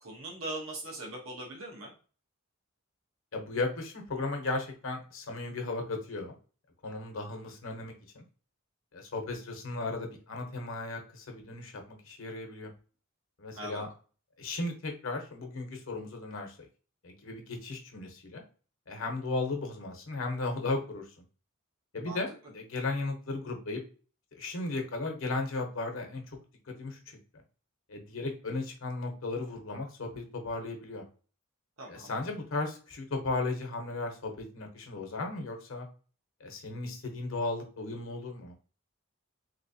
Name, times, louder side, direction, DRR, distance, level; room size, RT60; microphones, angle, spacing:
voice 1, 0.0-1.9 13.6-13.8 22.0-22.2 31.8-32.1, right 2 dB, 80° right, -1 dB, 1.0 m, -40 dB
voice 2, 3.3-6.4 6.8-8.2 8.9-12.7 13.4-13.9 14.4-16.7 17.0-18.4 18.9-21.1 21.9-23.8 24.3-26.4 26.7-27.2 27.9-31.0 31.9-35.9 36.4-38.5, left 3 dB, 75° left, 3 dB, 0.9 m, -35 dB
3.4 x 2.9 x 2.7 m, 0.38 s
head